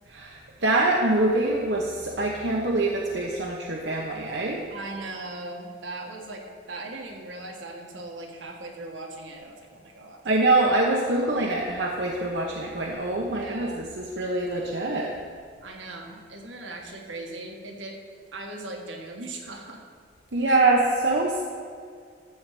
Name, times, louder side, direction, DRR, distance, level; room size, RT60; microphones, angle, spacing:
voice 1, 0.1-4.6 10.2-15.1 20.3-21.4, right 2 dB, 65° right, -1 dB, 0.9 m, -24 dB
voice 2, 4.7-10.2 13.3-13.9 15.6-18.0 18.3-19.8 20.4-20.7, right 2 dB, 80° right, 1 dB, 1.7 m, -39 dB
13.0 x 4.6 x 7.6 m, 2.2 s
head